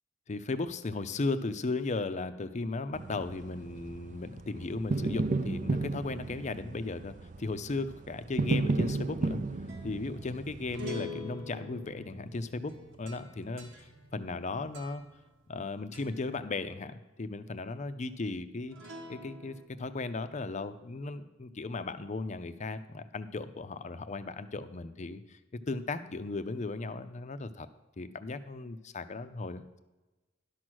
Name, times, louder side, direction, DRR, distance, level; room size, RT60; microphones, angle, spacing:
voice 1, 0.3-9.4 9.8-15.0 15.5-18.8 19.1-25.4 25.7-27.7 28.0-29.8, left 3 dB, 40° left, 11 dB, 0.6 m, -36 dB
sound 1, 2.9-11.0, right 3 dB, 40° right, 0.4 m, -34 dB
sound 2, 9.3-15.6 15.9-16.3 18.7-19.7, left 2 dB, 90° right, 1.5 m, -46 dB
11.5 x 6.1 x 6.2 m, 1.1 s
head